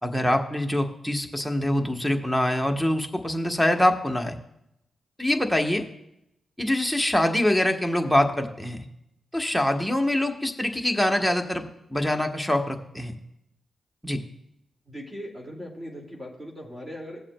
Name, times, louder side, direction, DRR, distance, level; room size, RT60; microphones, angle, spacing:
voice 1, 0.0-4.4 5.2-5.9 6.6-8.9 9.3-13.2 14.0-14.2, left 1 dB, ahead, 3 dB, 1.1 m, -24 dB
voice 2, 14.9-17.2, equal, 20° right, -1 dB, 2.2 m, -39 dB
17.5 x 7.3 x 2.2 m, 0.82 s
cardioid pair, 60°, 0 cm